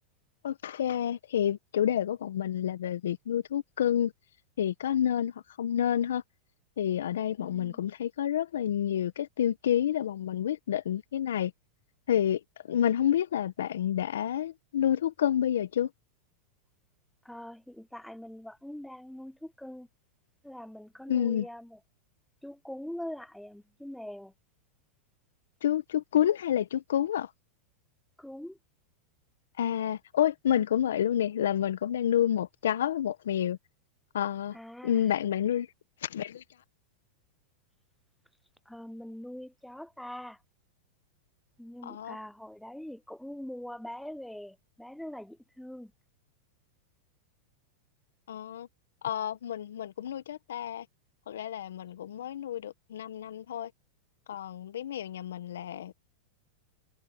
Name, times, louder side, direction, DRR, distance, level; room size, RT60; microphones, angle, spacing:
voice 1, 0.4-4.1 4.6-6.2 6.8-11.5 12.1-15.9 21.1-21.5 25.6-27.3 29.6-33.6 34.1-34.6 34.8-35.7 36.0-36.6 41.8-42.2 48.3-48.7 49.0-50.9 51.3-53.7 54.3-55.9, left 10 dB, 75° left, 1.3 m, -29 dB
voice 2, 17.3-19.9 20.4-21.6 22.4-24.3 28.2-28.6 34.5-34.9 38.7-40.4 41.6-45.9, left 1 dB, ahead, 0.6 m, -43 dB
hypercardioid pair, 110°, 0 cm